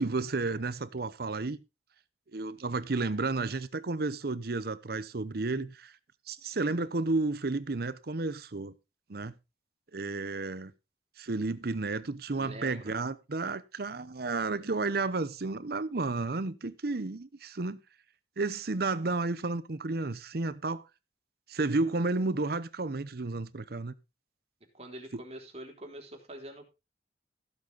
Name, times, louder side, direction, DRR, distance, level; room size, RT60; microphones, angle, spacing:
voice 1, 0.0-1.6 2.3-5.9 6.3-8.7 9.1-9.3 9.9-10.7 11.2-17.8 18.4-20.8 21.5-23.9 25.1-25.2, right 3 dB, 60° right, 0.8 m, -32 dB
voice 2, 12.4-12.9 24.8-26.6, right 1 dB, 35° right, 3.4 m, -45 dB
15.5 x 7.8 x 3.9 m
head